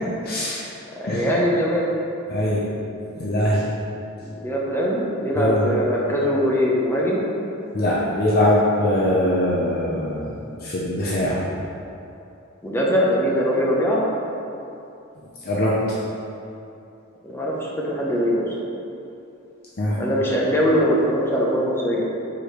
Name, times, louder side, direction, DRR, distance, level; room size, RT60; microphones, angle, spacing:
voice 1, 0.2-0.7 1.0-1.3 2.3-2.6 3.1-3.6 5.4-5.6 7.7-11.4 15.4-15.7 19.8-20.0, left 1 dB, 50° left, -6 dB, 0.8 m, -22 dB
voice 2, 1.0-1.9 4.2-7.3 12.6-14.0 17.2-18.5 20.0-22.0, equal, 10° left, -5 dB, 0.9 m, -22 dB
4.9 x 4.8 x 5.1 m, 2.8 s
head